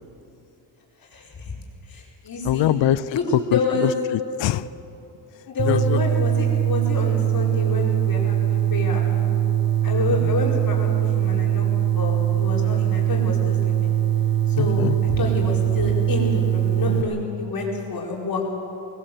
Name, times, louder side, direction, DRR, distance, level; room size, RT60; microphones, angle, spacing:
voice 1, 1.1-1.5 1.9-2.7 3.1-3.3 3.5-3.9 5.5-9.3 9.8-11.7 11.9-13.9 14.5-18.4, left 3 dB, 50° left, -3 dB, 4.8 m, -28 dB
voice 2, 2.4-3.0 3.5-4.7 5.7-6.0 10.2-10.3 14.6-15.0, left 12 dB, 90° left, 17 dB, 0.7 m, -23 dB
sound 1, 5.6-17.0, right 10 dB, 55° right, 1.8 m, -21 dB
20.5 x 19.0 x 7.7 m, 2.9 s
cardioid pair, 115°, 43 cm